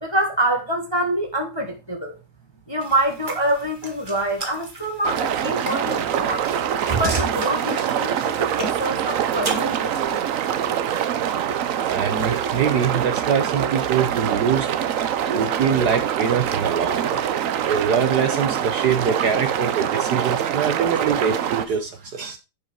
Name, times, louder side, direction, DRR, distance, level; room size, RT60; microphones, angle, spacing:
voice 1, 0.0-2.1 2.7-6.4 6.9-10.2, right 1 dB, 15° left, 1.0 m, -26 dB
sound 1, 2.8-10.2, right 3 dB, 25° right, 1.8 m, -33 dB
sound 2, 5.0-21.7, right 9 dB, 85° right, 0.7 m, -24 dB
voice 2, 11.9-14.7 15.2-17.3 17.7-22.4, right 7 dB, 60° right, 1.2 m, -23 dB
10.0 x 4.9 x 4.7 m
omnidirectional pair, 2.3 m